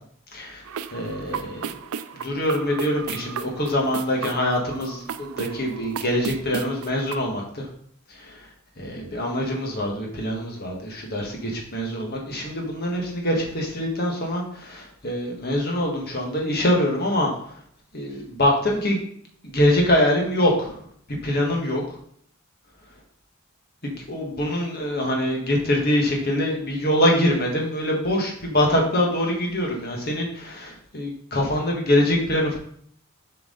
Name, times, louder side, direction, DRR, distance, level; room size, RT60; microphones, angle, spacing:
sound 1, 0.7-7.1, right 6 dB, 85° right, 0.4 m, -34 dB
voice 1, 0.9-1.8 2.2-7.7 8.1-8.5 8.8-17.6 17.9-19.0 19.4-21.8 23.8-32.6, left 1 dB, 45° left, 0 dB, 1.6 m, -24 dB
7.5 x 4.8 x 3.9 m, 0.63 s
head